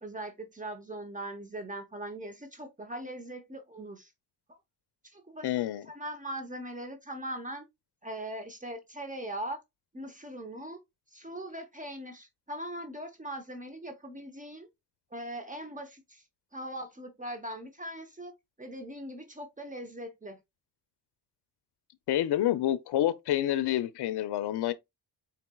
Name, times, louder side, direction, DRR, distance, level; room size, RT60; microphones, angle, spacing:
voice 1, 0.0-4.1 4.5-4.6 5.0-5.5 5.9-7.7 8.0-9.6 9.9-10.8 11.1-14.7 15.1-16.2 16.5-18.3 18.6-20.4, right 1 dB, 20° right, 0.8 m, -40 dB
voice 2, 5.4-5.9 22.1-24.7, left 12 dB, 70° left, 0.5 m, -28 dB
4.3 x 3.9 x 2.2 m
cardioid pair, 100°, 42 cm